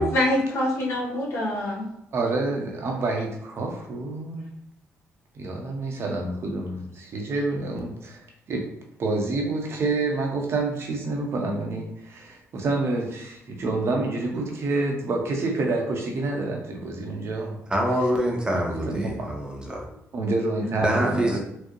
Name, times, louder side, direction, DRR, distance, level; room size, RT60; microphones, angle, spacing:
voice 1, 0.0-1.9 20.9-21.1, left 1 dB, 60° left, -4 dB, 1.2 m, -25 dB
voice 2, 2.1-4.5 5.3-8.2 8.5-8.7 9.0-17.6 18.9-19.3 20.1-21.4, right 2 dB, 55° right, 1 dB, 0.7 m, -28 dB
voice 3, 17.7-19.8 20.8-21.4, equal, 15° right, -1 dB, 0.7 m, -25 dB
4.5 x 2.1 x 3.0 m, 0.79 s
cardioid pair, 125°, 5 cm